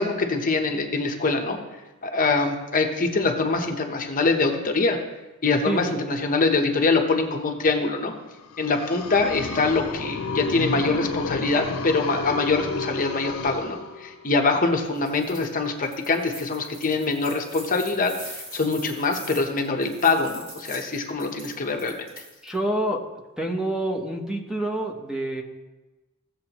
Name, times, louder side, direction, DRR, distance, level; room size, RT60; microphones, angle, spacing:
voice 1, 0.0-1.6 2.0-5.0 5.4-8.1 8.6-22.1, left 3 dB, 40° left, 3 dB, 0.9 m, -24 dB
sound 1, 8.4-14.3, left 3 dB, 80° left, 0.6 m, -31 dB
sound 2, 14.9-15.5 15.8-22.6, right 1 dB, 25° right, 3.3 m, -42 dB
voice 2, 22.4-23.0 23.4-25.4, right 1 dB, 5° right, 1 dB, 0.9 m, -27 dB
16.0 x 7.3 x 3.0 m, 1.1 s
head